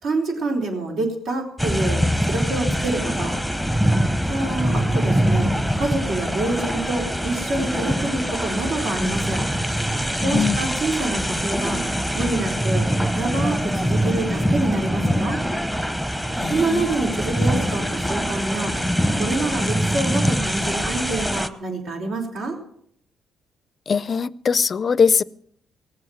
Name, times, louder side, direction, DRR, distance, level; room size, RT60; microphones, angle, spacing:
voice 1, 0.0-3.4 4.3-9.4 10.2-12.8 13.1-15.4 16.5-18.8 19.2-22.6, right 2 dB, 75° right, 4.2 m, -27 dB
sound 1, 1.6-21.5, equal, 5° right, 0.9 m, -23 dB
voice 2, 16.4-16.9 23.9-25.2, left 6 dB, 45° left, 0.5 m, -21 dB
18.5 x 7.7 x 7.9 m
cardioid pair, 90°, 0 cm